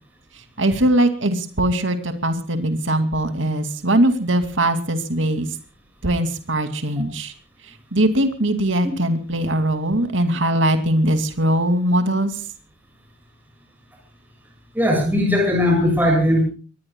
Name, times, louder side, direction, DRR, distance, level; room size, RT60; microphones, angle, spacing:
voice 1, 0.6-5.5 6.0-7.3 7.7-12.4, right 1 dB, 70° right, 8 dB, 2.5 m, -21 dB
voice 2, 14.8-16.4, left 1 dB, 10° right, 1 dB, 7.1 m, -18 dB
25.5 x 20.5 x 2.3 m, 0.35 s
head